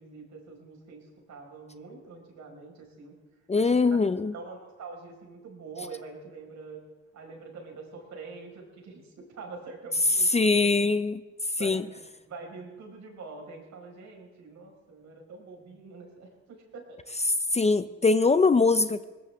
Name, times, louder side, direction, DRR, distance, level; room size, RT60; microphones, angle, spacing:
voice 1, 0.0-3.1 3.5-4.0 4.3-6.8 7.1-10.6 11.6-17.0, right 4 dB, 65° right, 1 dB, 5.1 m, -45 dB
voice 2, 3.5-4.3 10.3-11.2 11.6-11.8 17.5-19.0, left 4 dB, 20° left, 13 dB, 0.6 m, -22 dB
21.0 x 19.0 x 3.6 m, 1.2 s
cardioid pair, 90°, 30 cm